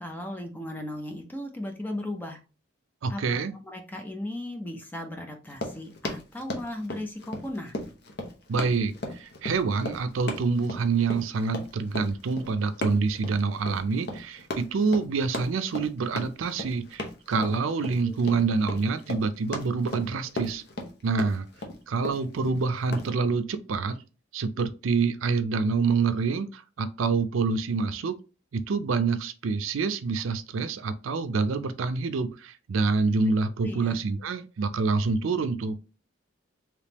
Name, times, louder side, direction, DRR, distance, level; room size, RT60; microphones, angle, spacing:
voice 1, 0.0-2.4 3.1-3.4 3.6-7.7 17.3-17.8 18.0-18.1 33.6-34.0, left 1 dB, 10° left, 3 dB, 0.5 m, -36 dB
voice 2, 3.0-3.5 8.5-20.6 21.0-21.5 21.9-24.0 24.3-28.2 28.5-35.8, right 4 dB, 80° right, 11 dB, 0.4 m, -27 dB
Run, 5.4-23.1, left 1 dB, 50° left, 0.7 m, -36 dB
3.5 x 2.9 x 2.9 m, 0.33 s
head